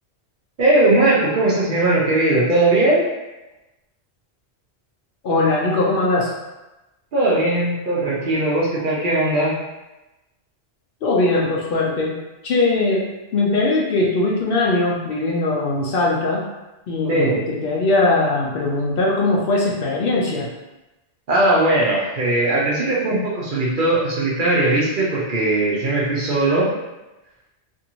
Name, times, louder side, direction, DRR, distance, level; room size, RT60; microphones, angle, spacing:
voice 1, 0.6-3.1 7.1-9.5 17.1-17.4 21.3-26.7, right 2 dB, 55° right, -5 dB, 0.7 m, -19 dB
voice 2, 5.2-6.3 11.0-12.1 12.4-16.4 16.9-20.5, left 2 dB, 60° left, -3 dB, 0.7 m, -20 dB
2.6 x 2.5 x 2.9 m, 1.0 s
omnidirectional pair, 1.1 m